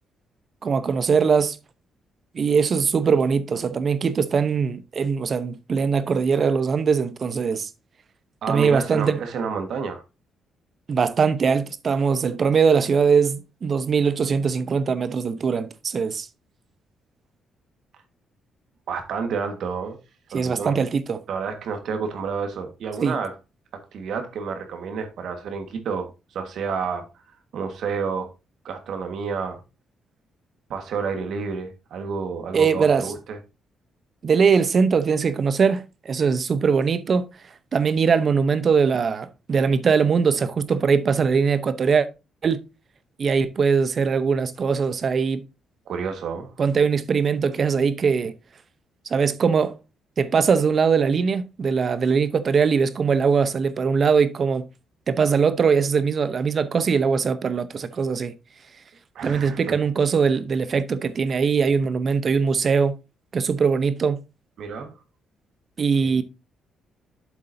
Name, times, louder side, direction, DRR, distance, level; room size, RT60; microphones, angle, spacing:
voice 1, 0.6-1.6 2.3-7.7 8.5-9.2 10.9-16.3 20.3-21.2 23.0-23.1 32.5-33.1 34.2-37.3 37.7-42.1 42.4-42.6 43.2-45.4 46.6-48.3 49.1-49.8 50.2-54.7 55.1-58.3 59.2-63.0 63.3-64.2 65.8-66.2, right 5 dB, 45° right, 0.8 m, -21 dB
voice 2, 8.4-10.0 18.9-20.0 20.3-20.8 21.3-23.3 23.9-27.1 27.5-28.3 28.6-29.6 30.7-33.4 45.9-46.5 59.1-59.7 64.6-64.9 66.0-66.1, right 5 dB, 70° right, 1.6 m, -30 dB
7.8 x 7.3 x 2.7 m
cardioid pair, 90°, 0 cm